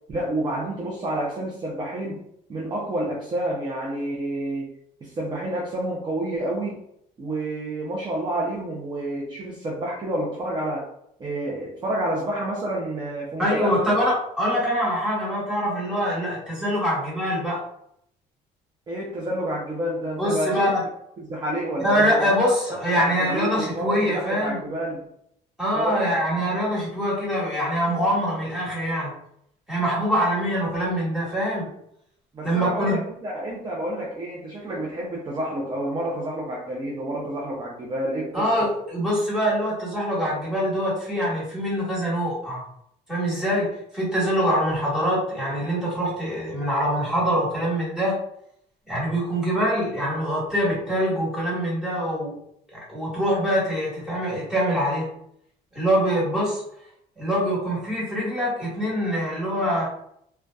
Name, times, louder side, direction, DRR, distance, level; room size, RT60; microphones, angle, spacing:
voice 1, 0.1-2.2 2.5-4.7 5.0-6.8 7.2-10.9 11.2-13.9 18.9-20.7 21.2-22.3 22.7-25.0 25.7-26.1 32.3-38.7, right 1 dB, 25° right, -3 dB, 0.5 m, -29 dB
voice 2, 13.4-17.6 20.2-20.8 21.8-24.6 25.6-29.1 29.7-31.7 32.4-33.0 38.3-42.6 43.1-48.2 48.9-52.3 52.7-55.1 55.7-56.6 57.2-59.9, equal, 5° right, -7 dB, 1.3 m, -24 dB
2.6 x 2.2 x 2.2 m, 0.72 s
cardioid pair, 110°, 17 cm